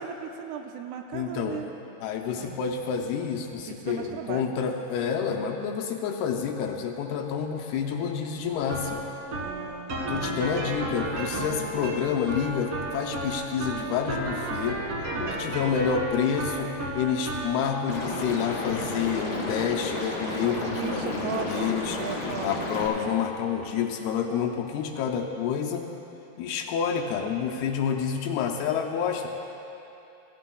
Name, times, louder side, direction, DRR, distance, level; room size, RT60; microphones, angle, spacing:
voice 1, 0.0-1.7 2.3-2.6 3.7-4.5 9.4-11.0 15.1-15.8 20.7-22.7, right 8 dB, 85° right, 4 dB, 2.7 m, -38 dB
voice 2, 1.1-1.6 2.0-9.0 10.1-14.8 15.2-22.0 22.4-25.9 26.4-29.3, left 7 dB, 80° left, 2 dB, 2.5 m, -28 dB
sound 1, 8.5-25.7, right 1 dB, 50° right, 2.1 m, -36 dB
Liquid, 17.9-22.9, left 2 dB, 40° left, 1.8 m, -32 dB
16.5 x 16.5 x 2.3 m, 2.8 s
omnidirectional pair, 4.8 m